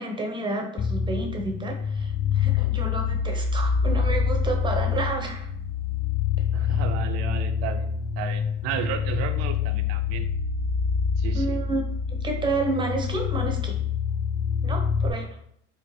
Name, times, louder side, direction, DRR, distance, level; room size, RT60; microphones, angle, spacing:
voice 1, 0.0-5.5 11.3-11.8 12.2-13.7 14.6-15.3, right 3 dB, 15° right, 2 dB, 0.7 m, -30 dB
sound 1, 0.8-15.1, left 6 dB, 30° left, 0.3 m, -26 dB
voice 2, 6.5-10.3 11.2-11.6, right 9 dB, 60° right, 8 dB, 0.5 m, -33 dB
4.3 x 2.1 x 3.0 m, 0.71 s
hypercardioid pair, 80°, 29 cm